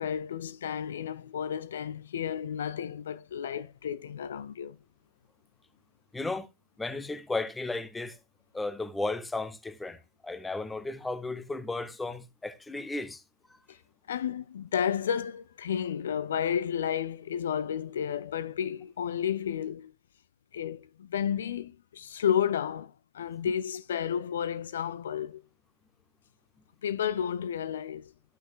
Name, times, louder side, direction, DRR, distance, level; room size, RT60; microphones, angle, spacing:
voice 1, 0.0-4.8 13.7-13.8 14.1-19.9 20.5-25.5 26.8-28.1, left 8 dB, 65° left, 0.4 m, -32 dB
voice 2, 6.1-6.5 6.8-8.2 8.5-13.2, left 2 dB, 10° left, 0.9 m, -34 dB
13.5 x 6.1 x 2.3 m
figure-of-eight pair, 95°, 0 cm